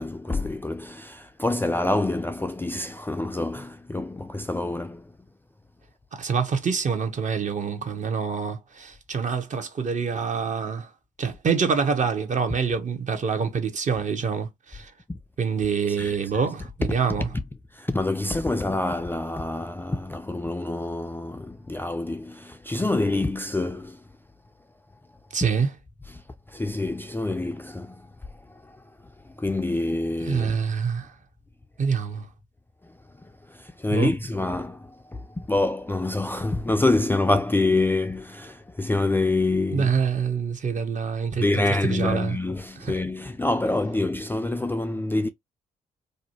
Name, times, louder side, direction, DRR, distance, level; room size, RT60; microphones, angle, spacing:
voice 1, 0.0-5.1 15.1-15.2 15.9-16.2 17.2-17.4 17.7-24.0 26.1-26.2 26.5-28.1 28.4-28.9 29.2-30.6 32.8-40.1 41.4-45.3, left 2 dB, 10° left, 0.3 m, -27 dB
voice 2, 6.2-10.9 11.2-14.9 15.4-17.3 25.3-25.7 30.2-31.1 31.8-32.3 33.9-34.1 39.7-42.4 42.8-42.9, right 6 dB, 45° right, 0.8 m, -26 dB
2.6 x 2.1 x 2.8 m
hypercardioid pair, 40°, 18 cm